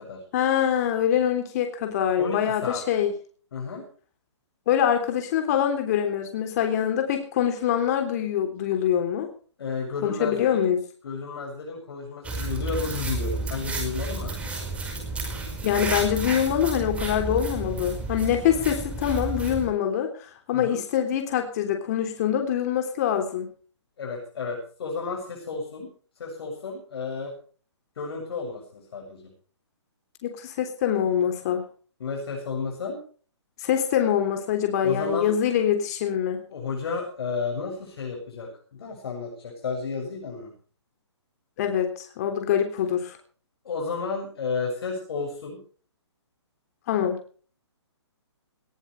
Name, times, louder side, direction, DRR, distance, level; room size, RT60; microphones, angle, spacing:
voice 1, 0.3-3.1 4.7-9.3 10.0-10.8 15.6-23.5 30.2-31.7 33.6-36.4 41.6-43.2 46.9-47.2, left 9 dB, 35° left, 5 dB, 3.3 m, -24 dB
voice 2, 2.2-2.8 3.5-3.8 9.6-10.6 11.0-14.4 20.5-20.8 24.0-25.9 26.2-27.3 28.0-29.3 32.0-33.0 34.8-35.3 36.5-40.5 43.6-45.6, left 4 dB, 55° left, 1 dB, 7.8 m, -32 dB
sound 1, 12.2-19.7, right 2 dB, 10° right, 5.1 m, -31 dB
20.0 x 18.0 x 3.4 m, 0.42 s
hypercardioid pair, 155°, 15 cm